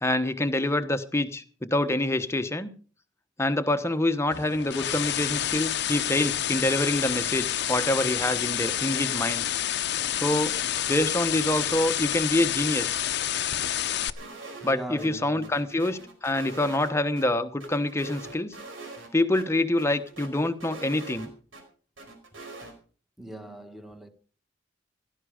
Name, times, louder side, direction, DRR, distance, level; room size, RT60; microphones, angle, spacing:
voice 1, 0.0-2.7 3.4-9.4 10.1-10.6 10.9-13.0 14.6-18.5 19.1-21.3, left 1 dB, 15° left, 1.1 m, -26 dB
sound 1, 4.3-14.1, left 11 dB, 60° left, 0.8 m, -29 dB
sound 2, 14.2-14.7 15.0-15.1 15.4-17.3 17.6-19.1 19.3-19.5 19.8-21.6 22.0-22.7, right 3 dB, 90° right, 5.0 m, -43 dB
voice 2, 14.6-15.6 23.2-24.1, right 1 dB, ahead, 1.6 m, -40 dB
16.5 x 13.0 x 5.0 m
head